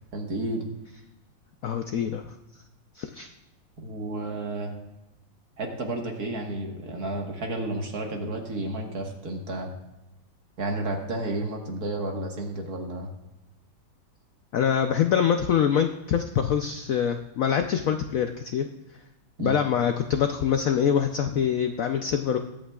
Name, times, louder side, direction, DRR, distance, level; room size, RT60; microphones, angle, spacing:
voice 1, 0.1-0.7 3.8-4.7 5.6-9.7 10.6-13.1 19.4-19.6, right 2 dB, 50° right, 2 dB, 1.9 m, -31 dB
voice 2, 1.6-2.2 2.9-3.3 14.5-18.7 19.4-22.4, left 8 dB, 75° left, 6 dB, 0.7 m, -24 dB
21.5 x 8.8 x 2.4 m, 0.95 s
omnidirectional pair, 2.1 m